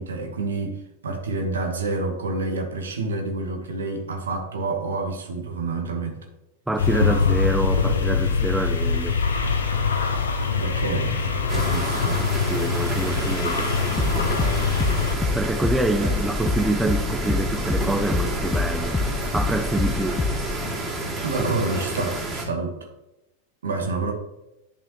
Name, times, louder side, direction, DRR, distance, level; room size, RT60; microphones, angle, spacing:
voice 1, 0.0-6.2 10.5-12.2 16.0-16.1 21.2-22.8 23.6-24.1, right 3 dB, 65° right, 1.5 m, -28 dB
voice 2, 6.7-9.2 12.5-13.7 15.3-19.0 19.3-20.2, right 2 dB, 5° right, 0.4 m, -26 dB
sound 1, 6.8-15.2, left 5 dB, 70° left, 0.9 m, -23 dB
sound 2, 11.5-22.4, right 2 dB, 25° right, 2.4 m, -29 dB
sound 3, 11.9-20.6, left 3 dB, 10° left, 0.8 m, -27 dB
10.0 x 5.5 x 3.1 m
figure-of-eight pair, 90°, 0 cm